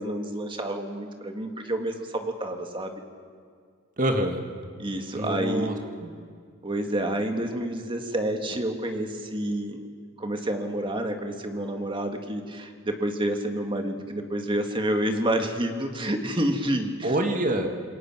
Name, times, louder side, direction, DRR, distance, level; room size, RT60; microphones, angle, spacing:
voice 1, 0.0-3.0 4.8-5.7 6.6-9.8 10.2-17.1, right 1 dB, 25° right, 4 dB, 1.9 m, -29 dB
voice 2, 4.0-4.4 5.1-5.8 6.0-6.1 17.0-17.7, right 1 dB, 40° right, 4 dB, 2.0 m, -26 dB
27.5 x 22.5 x 6.2 m, 2.1 s
head